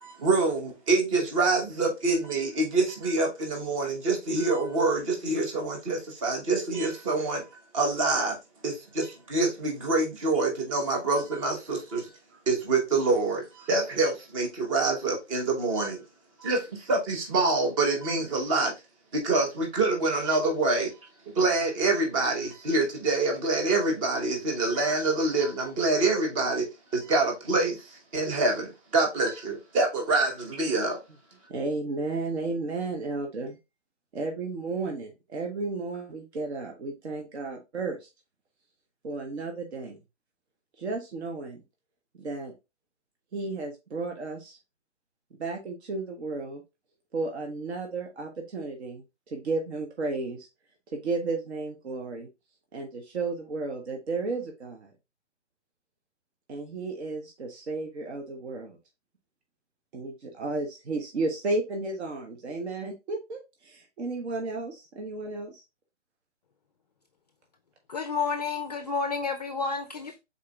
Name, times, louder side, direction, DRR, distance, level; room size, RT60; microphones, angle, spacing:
voice 1, 0.0-7.4 7.7-8.4 8.6-12.1 12.5-16.0 16.4-18.7 19.1-20.9 21.3-26.7 26.9-31.0, right 3 dB, 25° right, 1.1 m, -26 dB
voice 2, 31.5-33.6 34.1-38.1 39.0-40.0 40.8-41.6 42.2-42.5 43.3-44.6 45.4-46.6 47.1-50.5 50.9-52.3 52.7-54.9 56.5-58.8 59.9-65.6, right 3 dB, 65° right, 1.2 m, -33 dB
voice 3, 67.9-70.2, left 4 dB, 35° left, 0.4 m, -30 dB
4.7 x 4.1 x 2.4 m
hypercardioid pair, 150°, 36 cm